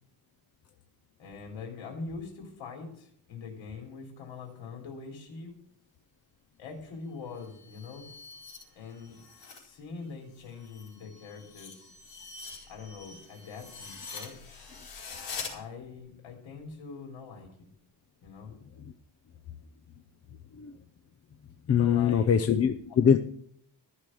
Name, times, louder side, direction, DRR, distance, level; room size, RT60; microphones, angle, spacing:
voice 1, 1.2-5.6 6.6-8.1 8.7-11.9 12.7-14.4 15.5-17.7 18.2-18.5 21.8-22.3, left 4 dB, 90° left, 1 dB, 3.4 m, -43 dB
sound 1, 7.2-9.7 10.0-15.5, left 5 dB, 65° left, 4.4 m, -45 dB
voice 2, 21.7-23.2, left 7 dB, 35° left, 8 dB, 0.6 m, -23 dB
14.0 x 6.7 x 7.7 m, 0.65 s
cardioid pair, 175°, 45 cm